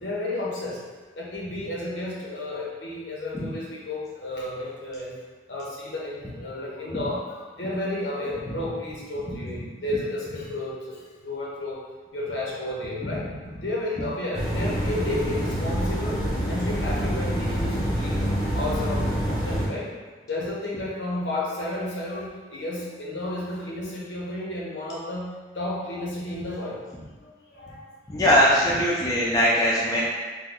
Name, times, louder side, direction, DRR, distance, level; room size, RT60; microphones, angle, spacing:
voice 1, 0.0-0.8 1.2-5.1 5.5-7.2 7.6-10.8 11.2-11.8 12.1-13.3 13.6-16.2 16.5-18.2 18.5-19.9 20.3-25.3 25.6-26.8 27.6-27.7, left 1 dB, 75° left, -5 dB, 0.8 m, -32 dB
sound 1, 14.3-19.7, equal, ahead, 0.9 m, -26 dB
voice 2, 28.1-30.0, equal, 20° left, -6 dB, 0.5 m, -20 dB
3.1 x 2.2 x 3.6 m, 1.4 s
head